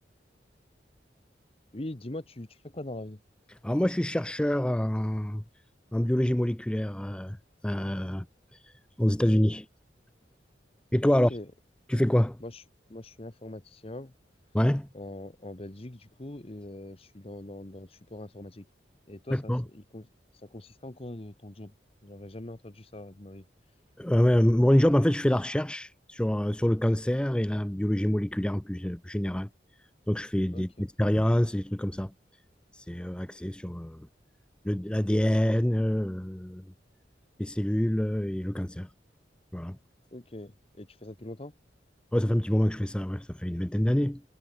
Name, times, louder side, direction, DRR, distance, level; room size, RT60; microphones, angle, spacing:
voice 1, 1.7-3.2 11.1-11.5 12.4-12.6 12.9-14.1 14.9-18.7 19.1-20.1 20.4-21.7 22.0-23.5 30.5-30.9 40.1-41.5, left 1 dB, 35° left, 1.2 m, -42 dB
voice 2, 3.6-5.4 5.9-7.4 7.6-8.3 8.5-9.7 10.9-11.3 11.9-12.4 14.5-14.9 19.3-19.6 24.0-29.5 30.1-32.1 32.7-34.1 34.6-36.6 37.4-38.9 39.5-39.8 42.1-44.2, equal, 5° left, 0.4 m, -26 dB
head